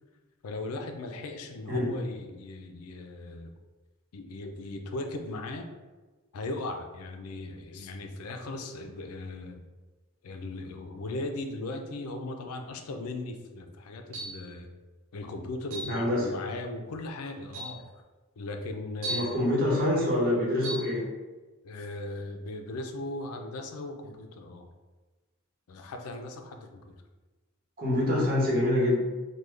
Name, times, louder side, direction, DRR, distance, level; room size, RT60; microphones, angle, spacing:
voice 1, 0.4-3.5 4.1-5.7 6.3-9.6 10.2-14.7 15.1-17.8 18.4-19.4 21.6-24.7 25.7-26.8, left 2 dB, 90° left, 5 dB, 0.4 m, -38 dB
sound 1, 14.1-14.5 15.7-16.0 16.9-17.0 17.5-17.8 19.0-19.4 20.6-20.9, right 2 dB, 75° right, 0.9 m, -36 dB
voice 2, 15.8-16.3 19.1-21.0 27.8-29.0, left 1 dB, 45° right, -4 dB, 1.0 m, -26 dB
3.5 x 2.2 x 3.1 m, 1.2 s
head